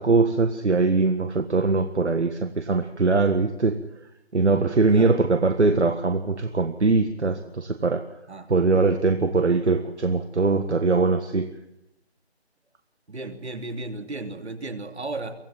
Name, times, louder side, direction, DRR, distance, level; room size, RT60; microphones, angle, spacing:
voice 1, 0.0-3.8 4.3-8.0 8.5-11.5, right 3 dB, 90° right, 8 dB, 1.7 m, -22 dB
voice 2, 13.1-15.3, right 2 dB, 75° right, 7 dB, 3.1 m, -34 dB
24.5 x 17.0 x 7.4 m, 0.85 s
figure-of-eight pair, 180°, 33 cm